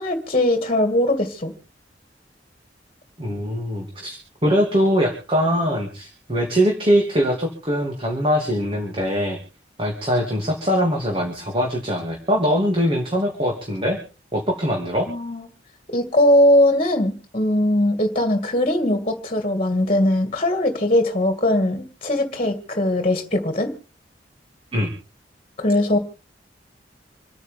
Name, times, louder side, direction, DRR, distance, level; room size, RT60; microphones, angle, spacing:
voice 1, 0.0-1.5 15.1-15.5 15.9-23.7 25.6-26.0, left 1 dB, 35° left, 6 dB, 2.2 m, -20 dB
voice 2, 3.2-4.2 4.4-9.4 9.8-14.0 14.3-15.1 24.7-24.9, equal, 30° right, 1 dB, 2.9 m, -22 dB
27.0 x 9.4 x 3.7 m, 0.34 s
head